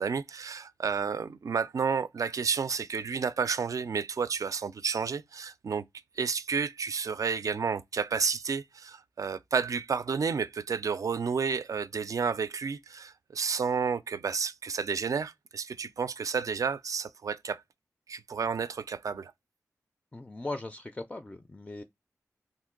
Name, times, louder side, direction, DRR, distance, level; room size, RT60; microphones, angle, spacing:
voice 1, 0.0-5.8 6.2-17.6 18.1-19.3, right 5 dB, 65° right, 0.3 m, -31 dB
voice 2, 20.1-21.8, left 2 dB, 20° left, 0.3 m, -39 dB
2.8 x 2.6 x 3.7 m
cardioid pair, 55°, 6 cm